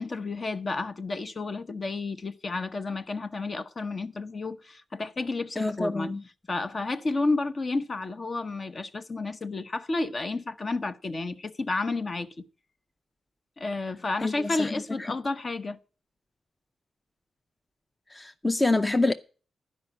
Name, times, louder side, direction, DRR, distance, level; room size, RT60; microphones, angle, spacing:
voice 1, 0.0-6.1 6.5-12.3 13.6-15.8, left 3 dB, 40° left, 0.9 m, -31 dB
voice 2, 5.6-6.2 14.2-14.7 18.1-19.1, left 2 dB, 20° left, 0.6 m, -26 dB
12.0 x 5.3 x 8.5 m
cardioid pair, 95°, 0 cm